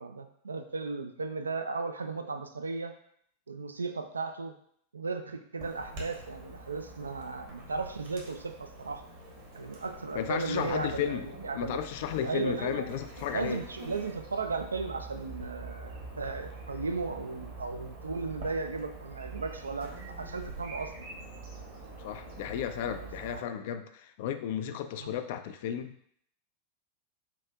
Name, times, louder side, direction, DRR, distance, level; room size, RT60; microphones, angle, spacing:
voice 1, 0.0-2.9 3.5-4.6 4.9-9.0 9.5-11.8 12.2-13.0 13.3-20.9 23.3-23.4 25.0-25.1, right 4 dB, 75° right, 7 dB, 0.3 m, -35 dB
Chirp tweet / Buzz, 5.6-23.4, right 2 dB, 55° right, 1.1 m, -45 dB
voice 2, 10.1-11.3 11.5-13.6 22.0-25.9, left 9 dB, 50° left, 10 dB, 0.3 m, -34 dB
5.7 x 2.5 x 2.3 m, 0.67 s
figure-of-eight pair, 90°, 0 cm